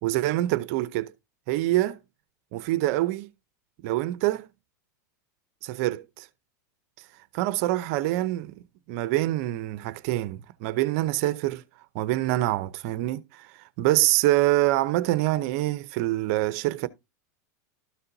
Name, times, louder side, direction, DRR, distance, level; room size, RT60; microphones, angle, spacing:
voice 1, 0.0-1.1 1.5-2.0 2.5-3.3 3.8-4.5 5.6-6.3 7.3-11.6 11.9-16.9, right 16 dB, 55° right, 0.6 m, -25 dB
13.0 x 4.3 x 3.9 m
supercardioid pair, 150°, 10 cm